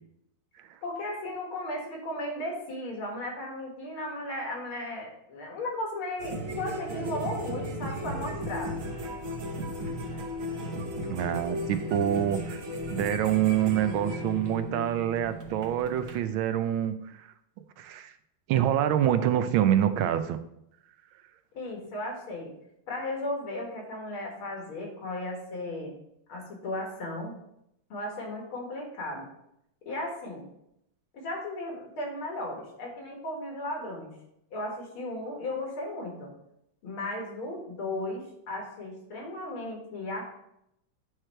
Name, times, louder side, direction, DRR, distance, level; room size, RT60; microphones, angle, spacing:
voice 1, 0.8-8.7 21.5-22.5 22.9-26.0 26.3-27.3 27.9-29.3 29.9-30.5 31.1-34.1 34.5-36.3 36.8-40.2, left 1 dB, 90° left, 0 dB, 2.6 m, -35 dB
sound 1, 6.2-16.2, equal, 50° right, 1.0 m, -35 dB
voice 2, 11.1-12.6 12.9-17.3 17.8-18.1 18.5-20.4, right 11 dB, 80° right, 10 dB, 1.4 m, -26 dB
9.1 x 3.2 x 4.3 m, 0.78 s
omnidirectional pair, 2.3 m